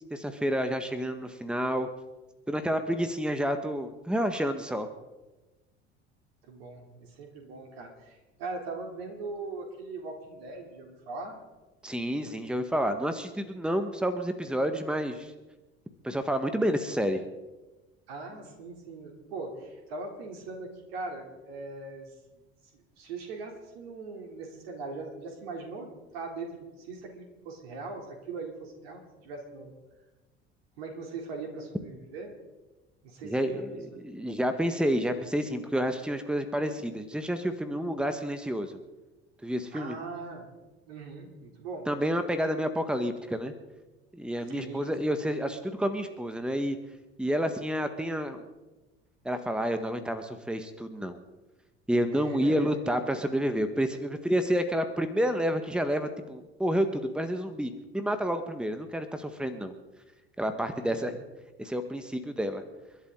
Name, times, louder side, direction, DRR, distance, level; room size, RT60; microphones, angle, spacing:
voice 1, 0.1-1.9 2.5-4.9 11.8-15.3 16.0-17.2 33.2-38.8 39.4-40.0 41.9-43.5 44.1-46.8 47.2-48.5 49.2-51.2 51.9-59.7 60.4-61.2 61.6-62.6, equal, 5° right, 9 dB, 1.6 m, -29 dB
voice 2, 6.4-11.4 18.1-22.1 22.3-22.5 22.7-29.7 30.8-32.4 33.0-34.0 39.7-40.5 40.9-41.9 44.5-44.9 52.2-52.8 60.9-61.2, right 3 dB, 65° right, 2 dB, 3.4 m, -40 dB
30.0 x 11.5 x 3.9 m, 1.1 s
figure-of-eight pair, 65°, 33 cm